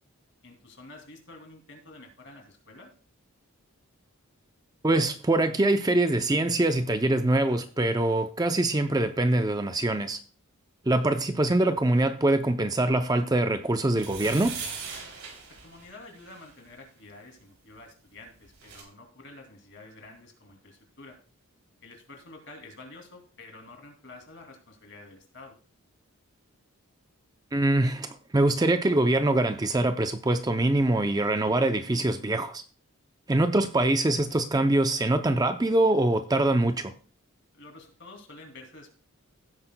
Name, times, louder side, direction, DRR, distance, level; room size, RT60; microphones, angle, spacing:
voice 1, 0.4-2.9 15.6-21.2 21.8-25.6 37.5-38.9, left 2 dB, 55° left, 2.6 m, -49 dB
voice 2, 4.8-10.2 10.9-14.6 27.5-32.6 33.3-36.9, right 2 dB, 15° right, 0.5 m, -24 dB
sound 1, 13.9-16.5 18.2-18.3 18.4-18.8, right 5 dB, 65° right, 3.2 m, -39 dB
16.0 x 8.9 x 2.2 m
head